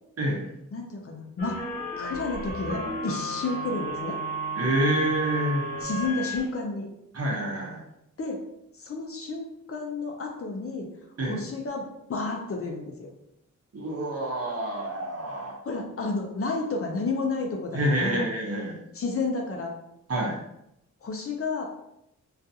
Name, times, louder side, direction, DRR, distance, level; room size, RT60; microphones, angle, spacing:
voice 1, 0.7-1.6 2.0-4.2 5.8-6.9 8.2-8.4 8.8-10.9 11.3-13.1 15.6-18.3 18.9-19.7 21.0-21.6, left 3 dB, 45° left, 1 dB, 0.5 m, -31 dB
sound 1, 1.4-6.5, right 1 dB, 30° left, 1.0 m, -33 dB
voice 2, 4.6-5.6 7.1-7.8 11.2-11.4 13.7-15.6 17.7-18.8 20.1-20.4, right 1 dB, 50° right, -3 dB, 0.9 m, -27 dB
2.4 x 2.3 x 2.7 m, 0.81 s
wide cardioid pair, 80°, 32 cm